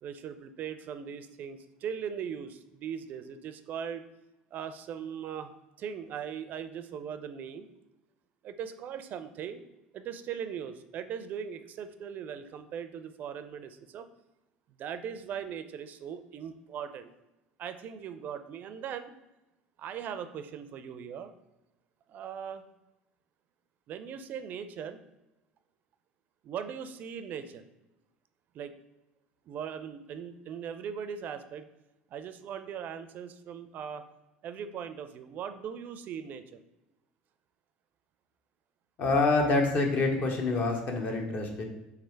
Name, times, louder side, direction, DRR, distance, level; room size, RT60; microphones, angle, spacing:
voice 1, 0.0-4.1 4.5-5.5 5.8-7.7 8.4-9.6 9.9-14.1 14.8-17.1 17.6-19.1 19.8-21.3 22.1-22.6 23.9-25.0 26.4-27.6 28.5-28.7 29.5-31.7 32.1-34.0 34.4-36.6, right 8 dB, 50° right, 10 dB, 0.4 m, -39 dB
voice 2, 39.0-41.6, left 3 dB, 50° left, 2 dB, 1.0 m, -26 dB
3.5 x 3.3 x 4.4 m, 0.97 s
supercardioid pair, 90°, 4 cm